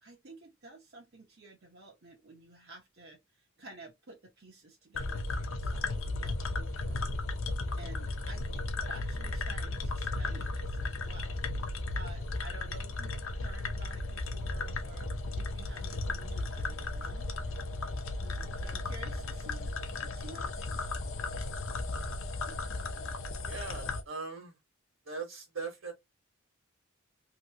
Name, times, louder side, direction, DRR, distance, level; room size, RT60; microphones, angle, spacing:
voice 1, 0.0-7.1 7.8-15.1 15.4-17.3 18.2-19.7 20.0-20.8, right 2 dB, 50° right, 0.8 m, -52 dB
sound 1, 4.9-24.0, left 2 dB, 65° left, 0.7 m, -35 dB
voice 2, 23.5-24.5 25.0-25.9, right 4 dB, 70° right, 1.5 m, -40 dB
3.0 x 2.8 x 2.8 m
head